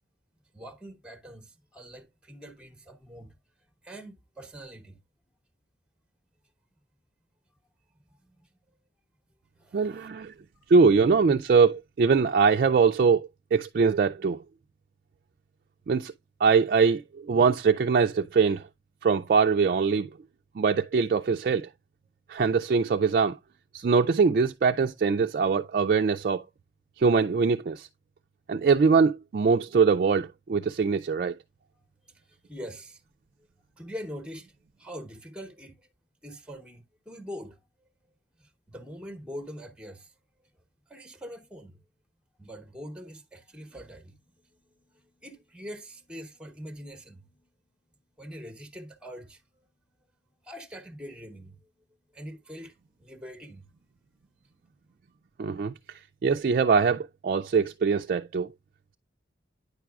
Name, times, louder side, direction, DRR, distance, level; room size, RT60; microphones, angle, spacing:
voice 1, 0.5-3.3 3.8-5.0 8.1-8.5 9.6-10.1 32.1-33.0 33.8-35.9 36.2-37.6 38.4-40.1 40.9-41.8 42.4-47.5 48.2-49.4 50.4-51.7 52.1-53.7, equal, 5° right, 0.8 m, -43 dB
voice 2, 9.7-10.3 10.7-14.4 15.9-16.1 16.4-18.6 19.0-20.1 20.6-21.7 22.3-23.4 23.7-26.4 27.0-27.9 28.5-31.3 55.4-55.7 56.2-58.5, right 5 dB, 50° right, 0.3 m, -22 dB
9.5 x 5.9 x 2.3 m
head